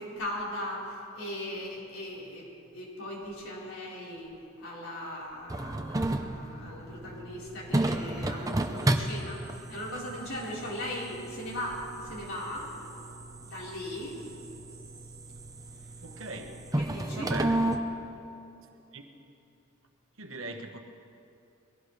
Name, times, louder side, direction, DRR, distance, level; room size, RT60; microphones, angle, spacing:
voice 1, 0.0-12.7 13.4-14.2 15.8-15.9 16.3-16.4 16.7-17.3, left 1 dB, 75° left, -5 dB, 4.1 m, -39 dB
sound 1, 5.5-17.8, right 1 dB, 15° right, 0.7 m, -33 dB
Keyboard (musical), 11.1-13.9, right 4 dB, 40° left, 0.9 m, -50 dB
voice 2, 16.0-16.6 17.1-17.7 18.9-19.0 20.2-20.8, right 2 dB, 65° right, 4 dB, 1.3 m, -39 dB
22.0 x 17.0 x 3.2 m, 2.7 s
head